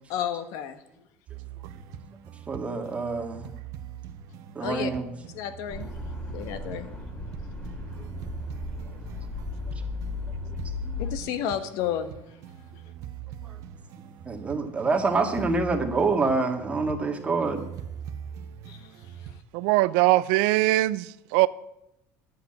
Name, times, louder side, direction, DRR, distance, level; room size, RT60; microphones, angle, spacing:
voice 1, 0.1-0.8 4.6-4.9 5.3-5.9 6.3-6.9 11.0-12.1 12.7-12.8 18.7-18.8, left 9 dB, 70° left, 1.2 m, -31 dB
sound 1, 1.3-19.4, right 8 dB, 60° right, 1.1 m, -42 dB
voice 2, 2.5-3.5 4.6-5.1 8.0-8.1 10.3-10.4 10.8-11.1 13.4-13.6 14.3-17.6, right 3 dB, 20° right, 2.0 m, -27 dB
sound 2, 5.7-11.2, left 4 dB, 15° left, 2.4 m, -36 dB
voice 3, 19.5-21.5, right 18 dB, 80° right, 0.4 m, -21 dB
9.7 x 8.0 x 8.9 m
supercardioid pair, 110°, 6 cm